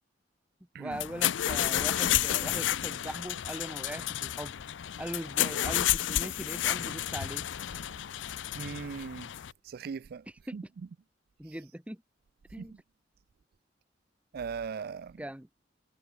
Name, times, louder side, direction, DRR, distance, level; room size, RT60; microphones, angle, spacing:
voice 1, 0.8-4.5 5.0-7.4 10.5-10.6 11.4-12.0 12.5-12.7 15.2-15.5, right 1 dB, 5° right, 0.9 m, -40 dB
sound 1, 0.9-9.5, left 12 dB, 85° left, 0.5 m, -31 dB
voice 2, 8.5-9.3 9.7-10.2 10.5-10.6 12.6-12.8 14.3-15.2, right 6 dB, 55° right, 0.4 m, -39 dB
head